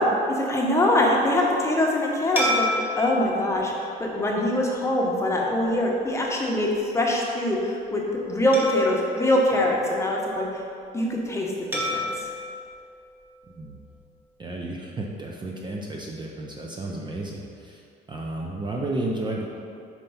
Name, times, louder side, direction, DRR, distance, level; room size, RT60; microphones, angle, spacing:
voice 1, 0.0-8.0 8.3-10.5 10.9-12.1, left 1 dB, 15° left, -2 dB, 1.0 m, -23 dB
sound 1, 2.4-5.0 5.6-5.8 8.5-10.3 11.7-14.0, left 1 dB, 10° right, 1.2 m, -32 dB
voice 2, 14.4-17.8 18.1-19.5, right 2 dB, 25° right, -1 dB, 0.6 m, -32 dB
4.5 x 4.4 x 5.5 m, 2.5 s
cardioid pair, 110°, 17 cm